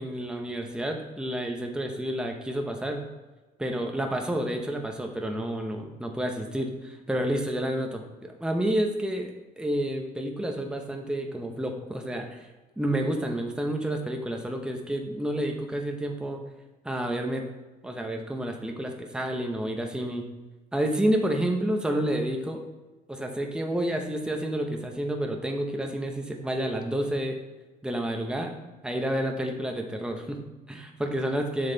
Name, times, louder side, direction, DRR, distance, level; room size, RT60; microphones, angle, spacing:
voice 1, 0.0-3.0 3.6-12.5 12.8-16.4 16.8-17.4 17.8-20.3 20.7-22.6 23.1-27.4 27.8-28.5 28.8-31.7, right 1 dB, 5° right, 2 dB, 0.9 m, -30 dB
7.2 x 6.4 x 4.0 m, 1.2 s
cardioid pair, 110°, 17 cm